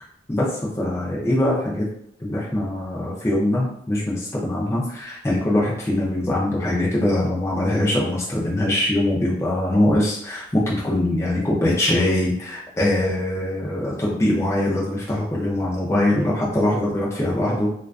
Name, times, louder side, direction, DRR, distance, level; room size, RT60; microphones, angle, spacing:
voice 1, 0.3-1.9 2.2-17.7, left 1 dB, 15° left, -5 dB, 0.4 m, -22 dB
2.3 x 2.3 x 2.3 m, 0.72 s
head